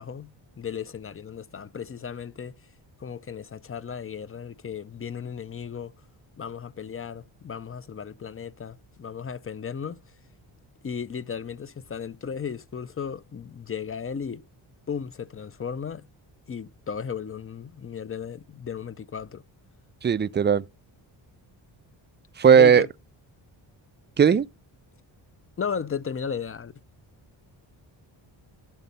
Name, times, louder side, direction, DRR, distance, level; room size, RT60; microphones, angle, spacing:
voice 1, 0.0-2.5 3.0-5.9 6.4-10.0 10.8-14.4 14.9-16.1 16.5-19.4 22.5-22.9 24.3-24.4 25.6-26.8, left 7 dB, 30° left, 0.6 m, -35 dB
voice 2, 20.0-20.6 22.4-22.9 24.2-24.4, right 7 dB, 25° right, 0.4 m, -17 dB
12.0 x 4.2 x 5.4 m
cardioid pair, 75°, 47 cm